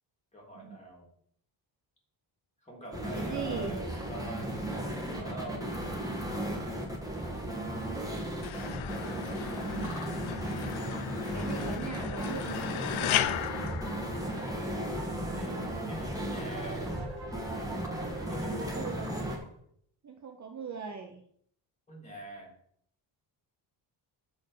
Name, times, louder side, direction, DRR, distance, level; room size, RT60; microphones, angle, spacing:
voice 1, 0.3-1.1 2.6-7.4 9.1-9.6 15.3-15.5 15.9-16.8 18.3-18.8 21.9-22.5, right 1 dB, 15° left, -4 dB, 3.1 m, -45 dB
sound 1, 2.9-19.4, right 1 dB, 10° right, 1.5 m, -35 dB
voice 2, 3.1-3.7 9.6-9.9 11.3-13.3 18.7-19.3 20.0-21.2, right 5 dB, 35° right, 4 dB, 0.8 m, -39 dB
sound 2, 8.4-14.7, left 12 dB, 90° left, 0.6 m, -36 dB
sound 3, 12.1-19.5, right 2 dB, 55° right, 1.9 m, -44 dB
6.8 x 4.6 x 6.7 m, 0.66 s
wide cardioid pair, 140°, 47 cm